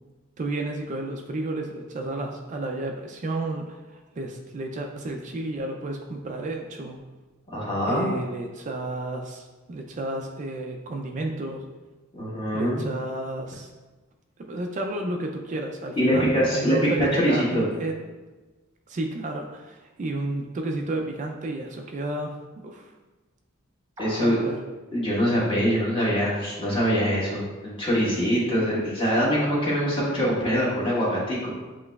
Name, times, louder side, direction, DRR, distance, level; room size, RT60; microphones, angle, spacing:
voice 1, 0.4-7.0 7.9-11.6 12.5-13.7 14.4-18.0 18.9-22.9 24.2-24.6, right 2 dB, 35° right, 3 dB, 0.4 m, -32 dB
voice 2, 7.5-8.1 12.1-12.8 16.0-17.6 24.0-24.5 24.9-31.5, equal, 25° left, -7 dB, 1.4 m, -23 dB
sound 1, 24.0-24.5, equal, 20° right, 0.8 m, -39 dB
7.6 x 3.0 x 2.3 m, 1.2 s
head